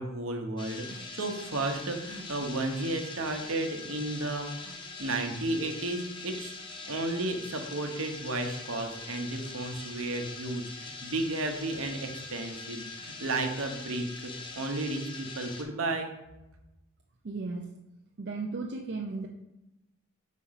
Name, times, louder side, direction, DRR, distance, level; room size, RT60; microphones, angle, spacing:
voice 1, 0.0-6.5 6.9-16.1, right 2 dB, 70° right, 4 dB, 1.0 m, -33 dB
sound 1, 0.6-15.6, left 3 dB, 25° left, 0.8 m, -43 dB
voice 2, 17.2-17.7 18.2-19.3, right 3 dB, 50° right, 0 dB, 0.5 m, -35 dB
4.9 x 4.2 x 5.7 m, 0.92 s
head